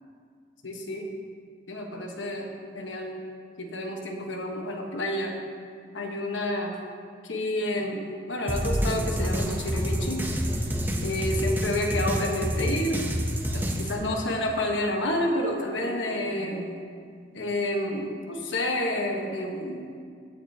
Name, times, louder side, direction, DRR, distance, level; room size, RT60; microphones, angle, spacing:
voice 1, 0.6-1.1 1.7-3.2 3.6-5.4 5.9-6.8 7.2-10.2 11.0-13.1 13.5-16.7 17.3-19.8, left 1 dB, 90° left, 2 dB, 1.2 m, -29 dB
sound 1, 8.5-14.0, equal, 10° right, 0.8 m, -28 dB
16.0 x 7.8 x 2.8 m, 2.2 s
head